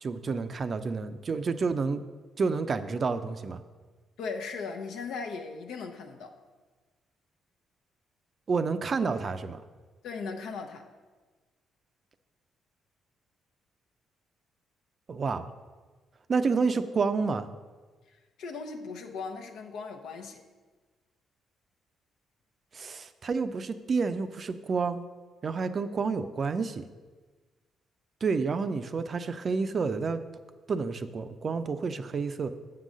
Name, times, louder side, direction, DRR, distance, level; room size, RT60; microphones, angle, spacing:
voice 1, 0.0-2.0 2.4-3.6 8.5-9.6 15.1-15.4 16.3-17.5 22.7-25.0 25.4-26.9 28.2-30.2 30.7-32.5, right 4 dB, 45° right, 11 dB, 0.4 m, -29 dB
voice 2, 4.2-6.4 10.0-10.9 18.4-20.4, left 4 dB, 85° left, 4 dB, 0.7 m, -38 dB
7.3 x 3.9 x 6.2 m, 1.3 s
cardioid pair, 90°, 0 cm